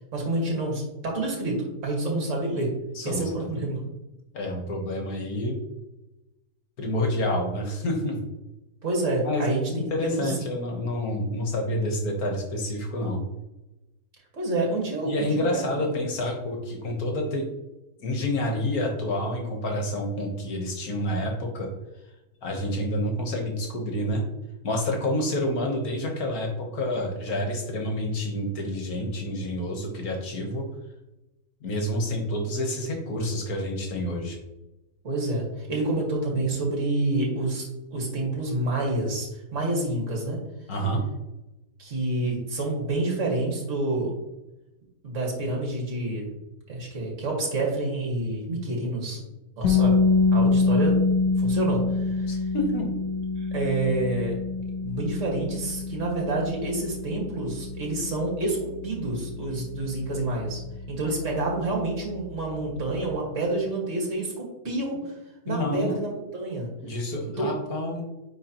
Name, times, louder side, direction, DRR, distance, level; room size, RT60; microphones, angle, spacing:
voice 1, 0.1-2.7 3.0-3.8 8.8-9.7 10.0-10.4 14.3-15.6 35.0-37.6 37.9-40.4 41.8-44.1 45.0-46.3 46.7-49.2 49.6-50.0 50.3-51.0 51.4-52.3 53.5-54.3 54.8-60.6 60.9-65.1 65.4-66.7 67.4-67.5, right 2 dB, 45° right, -1 dB, 2.1 m, -28 dB
voice 2, 4.3-5.6 6.8-8.2 9.2-13.2 15.1-17.5 18.0-21.7 22.4-24.2 24.6-30.7 31.6-34.4 40.7-41.0 52.3-52.9 61.0-61.2 65.5-66.0 66.8-68.0, left 1 dB, 60° left, 1 dB, 1.7 m, -28 dB
sound 1, 49.6-61.5, left 4 dB, 80° left, 1.6 m, -26 dB
9.3 x 4.0 x 3.0 m, 0.99 s
omnidirectional pair, 1.8 m